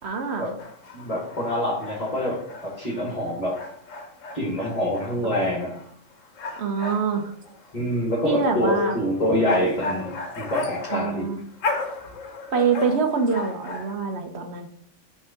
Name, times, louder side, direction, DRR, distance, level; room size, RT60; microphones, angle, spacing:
voice 1, 0.0-0.5 6.5-7.2 8.2-9.0 10.9-11.4 12.5-14.7, right 5 dB, 60° right, 5 dB, 1.2 m, -25 dB
sound 1, 0.6-13.9, left 3 dB, 85° left, 1.3 m, -35 dB
voice 2, 0.9-3.6 4.3-5.8 7.7-10.1 10.4-11.3, equal, 30° left, -4 dB, 1.7 m, -25 dB
6.1 x 3.6 x 5.9 m, 0.65 s
omnidirectional pair, 1.3 m